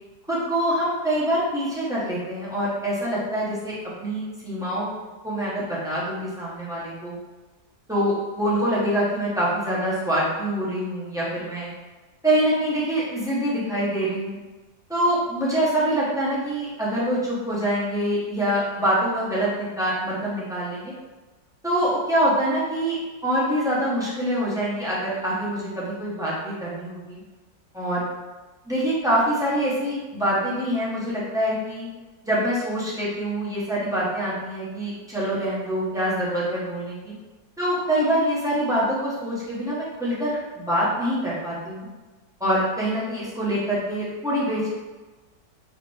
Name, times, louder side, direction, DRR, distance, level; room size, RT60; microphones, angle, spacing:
voice 1, 0.3-4.9 5.2-7.2 7.9-11.7 12.2-14.4 14.9-20.9 21.6-27.2 27.7-28.0 28.6-31.9 32.2-37.1 37.6-41.9 42.4-44.7, equal, 5° right, -8 dB, 0.8 m, -25 dB
3.9 x 3.1 x 3.4 m, 1.2 s
omnidirectional pair, 1.9 m